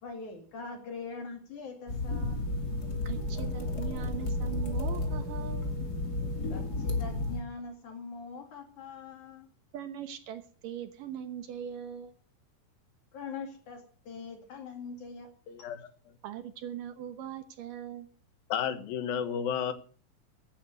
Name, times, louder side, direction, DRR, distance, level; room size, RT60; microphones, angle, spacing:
voice 1, 0.0-2.6 6.5-9.5 13.1-15.3 15.6-15.7, left 4 dB, 60° left, 3.6 m, -43 dB
sound 1, 1.9-7.4, left 2 dB, 30° left, 2.7 m, -32 dB
voice 2, 3.1-5.7 9.7-12.2 16.2-18.1, right 9 dB, 70° right, 2.6 m, -41 dB
voice 3, 15.5-15.9 18.5-19.7, left 8 dB, 80° left, 3.2 m, -32 dB
16.0 x 10.5 x 6.6 m
omnidirectional pair, 4.1 m